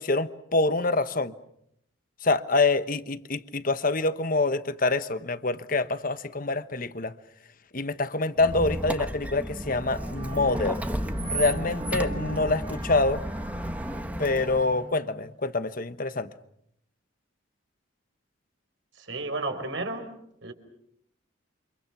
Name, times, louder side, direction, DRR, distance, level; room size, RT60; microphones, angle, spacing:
voice 1, 0.0-1.3 2.2-7.1 7.7-10.8 11.3-13.2 14.2-16.3, left 3 dB, 45° left, 1.2 m, -26 dB
Squeak, 8.4-14.8, right 1 dB, 5° right, 1.2 m, -33 dB
Wind instrument woodwind instrument, 9.6-15.3, right 1 dB, 35° right, 4.5 m, -43 dB
voice 2, 18.9-20.1 20.4-20.5, right 2 dB, 65° right, 4.7 m, -32 dB
29.0 x 26.5 x 6.1 m
head